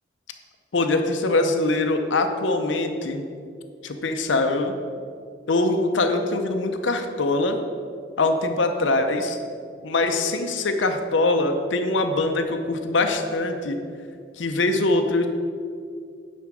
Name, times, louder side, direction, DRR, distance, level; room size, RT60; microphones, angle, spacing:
voice 1, 0.7-3.2 3.8-4.7 5.5-7.6 8.2-9.4 9.8-13.8 14.4-15.3, left 2 dB, 85° left, 6 dB, 0.7 m, -23 dB
9.4 x 4.3 x 6.2 m, 2.3 s
head